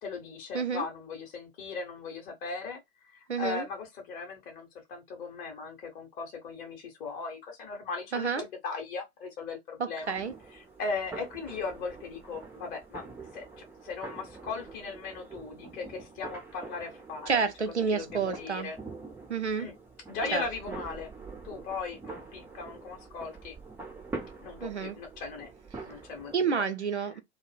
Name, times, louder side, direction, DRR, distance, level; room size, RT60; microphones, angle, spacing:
voice 1, 0.0-2.8 3.1-10.1 10.8-13.0 13.3-13.4 13.8-17.4 17.9-18.8 19.6-19.7 20.1-21.1 21.4-23.5 24.4-25.5 25.8-26.6, left 4 dB, 25° left, 0.8 m, -38 dB
voice 2, 0.5-0.9 3.3-3.7 8.1-8.5 9.8-10.3 17.3-18.7 19.3-19.7 20.3-20.8 24.6-25.0 26.3-27.2, right 5 dB, 85° right, 0.5 m, -30 dB
sound 1, 10.0-26.4, right 3 dB, 5° right, 0.4 m, -45 dB
2.1 x 2.0 x 3.2 m
figure-of-eight pair, 95°, 33 cm